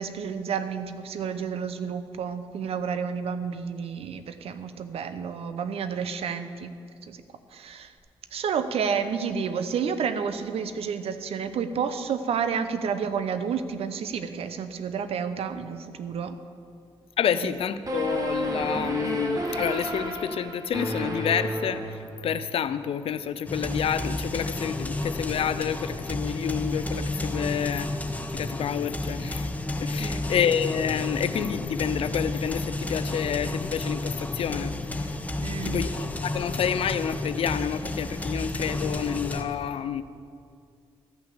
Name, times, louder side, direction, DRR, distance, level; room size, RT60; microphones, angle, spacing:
voice 1, 0.0-6.7 7.1-7.2 7.5-7.9 8.3-16.4 17.4-17.5 30.0-30.2 35.4-35.8, right 6 dB, 70° right, 10 dB, 0.7 m, -30 dB
voice 2, 17.2-27.9 28.3-29.5 29.8-35.1 35.6-40.0, left 8 dB, 65° left, 13 dB, 0.5 m, -29 dB
sound 1, 17.9-22.5, right 1 dB, 35° right, 1.6 m, -31 dB
sound 2, 23.5-39.4, left 2 dB, 15° left, 1.0 m, -31 dB
13.5 x 5.8 x 7.3 m, 2.3 s
supercardioid pair, 65°, 11 cm